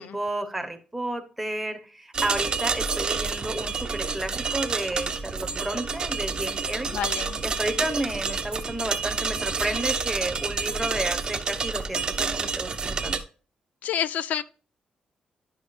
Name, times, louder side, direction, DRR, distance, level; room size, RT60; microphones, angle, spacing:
voice 1, 0.0-7.0 7.4-13.2, right 1 dB, 5° right, 0.9 m, -31 dB
sound 1, 2.1-13.2, right 5 dB, 30° right, 0.6 m, -29 dB
voice 2, 6.8-7.4 13.8-14.4, left 9 dB, 75° left, 0.3 m, -29 dB
10.5 x 5.7 x 2.5 m
wide cardioid pair, 170°, 3 cm